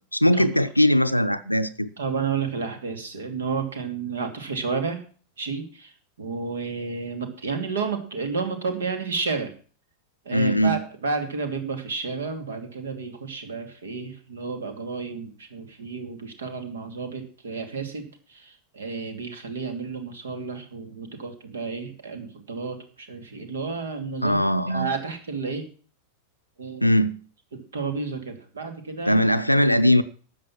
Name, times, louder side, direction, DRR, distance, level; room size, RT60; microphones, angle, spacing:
voice 1, 0.0-1.9 10.3-10.8 24.2-24.9 26.8-27.2 29.1-30.0, equal, 90° left, 0.6 m, -20 dB
voice 2, 2.0-5.0 5.4-5.9 6.2-9.5 10.2-25.7 26.6-26.9 27.5-29.2, right 4 dB, 65° right, 2.6 m, -31 dB
13.0 x 8.2 x 6.0 m
figure-of-eight pair, 90°, 0 cm